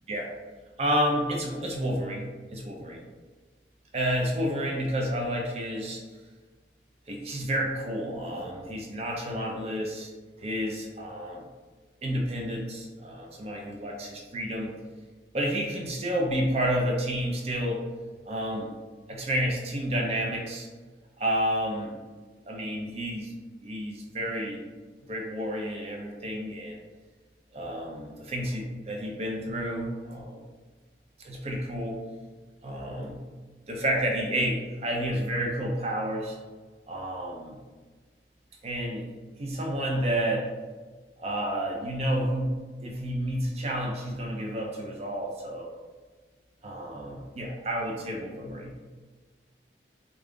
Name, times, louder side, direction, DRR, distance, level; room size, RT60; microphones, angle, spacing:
voice 1, 0.8-3.0 3.9-6.0 7.1-10.1 10.4-11.4 12.0-14.7 15.3-17.8 18.3-18.7 19.1-20.7 21.2-22.0 22.5-23.3 23.6-24.6 25.1-26.8 27.5-30.4 31.2-32.0 32.6-33.2 33.7-36.4 36.9-37.6 38.6-39.1 39.4-40.5 41.2-45.7 46.6-48.8, equal, 35° right, 0 dB, 0.5 m, -30 dB
3.6 x 2.3 x 3.5 m, 1.4 s
head